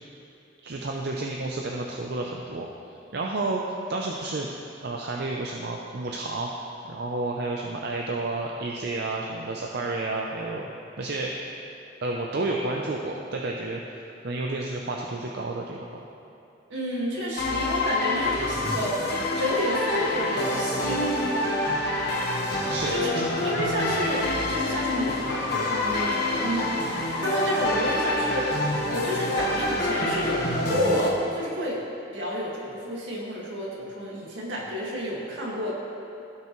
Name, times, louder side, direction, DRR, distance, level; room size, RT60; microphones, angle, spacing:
voice 1, 0.6-2.7 3.1-3.6 3.9-4.5 4.8-6.5 6.9-10.7 11.0-11.3 12.0-13.8 14.2-16.0 22.7-22.9, right 2 dB, 60° right, -1 dB, 0.6 m, -30 dB
voice 2, 16.7-19.0 19.4-21.2 22.9-23.2 23.4-31.8 32.1-35.7, equal, 80° right, -5 dB, 2.0 m, -30 dB
sound 1, 17.4-31.1, left 1 dB, 60° left, 1.4 m, -27 dB
16.5 x 5.7 x 3.1 m, 2.7 s
head